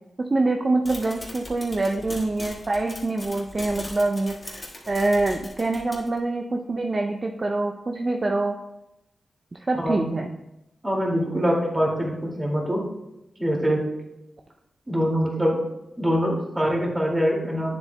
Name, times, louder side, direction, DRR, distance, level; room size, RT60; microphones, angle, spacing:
voice 1, 0.2-8.5 9.7-10.4, right 2 dB, 40° right, 3 dB, 0.5 m, -25 dB
sound 1, 0.9-6.2, left 1 dB, 35° left, 1.6 m, -39 dB
voice 2, 9.8-10.2 10.8-12.8 13.4-13.8 14.9-15.6 16.0-17.8, equal, 20° right, -2 dB, 2.2 m, -24 dB
9.0 x 7.3 x 2.2 m, 0.90 s
cardioid pair, 65°, 0 cm